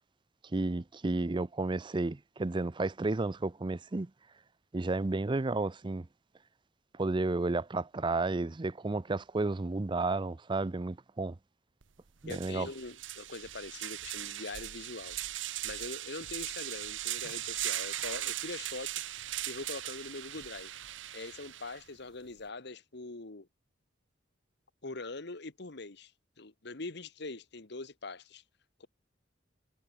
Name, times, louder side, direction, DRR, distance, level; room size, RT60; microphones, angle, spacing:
voice 1, 0.5-4.1 4.7-6.1 6.9-11.4 12.2-12.7, right 2 dB, 25° right, 0.5 m, -32 dB
sound 1, 11.8-11.9 12.2-21.8, right 14 dB, 75° right, 0.9 m, -39 dB
voice 2, 12.3-15.2 15.6-20.7 21.1-23.5 24.8-26.1 26.4-28.4 28.8-28.9, left 3 dB, 60° left, 1.5 m, -43 dB
head